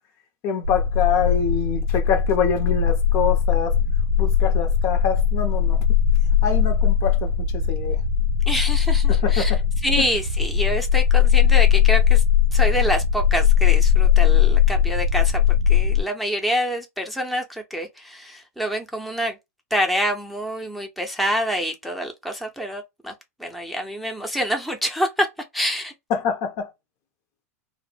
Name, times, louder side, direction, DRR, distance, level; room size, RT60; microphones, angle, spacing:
voice 1, 0.4-3.8 4.2-5.8 6.4-8.0 9.1-9.6 10.0-10.1 26.1-26.7, left 6 dB, 50° left, 0.7 m, -25 dB
sound 1, 0.6-16.0, left 8 dB, 85° right, 0.5 m, -19 dB
voice 2, 8.5-12.2 12.5-19.4 19.7-23.1 23.4-25.3 25.5-25.9, equal, ahead, 0.6 m, -26 dB
2.0 x 2.0 x 3.2 m
hypercardioid pair, 100°, 8 cm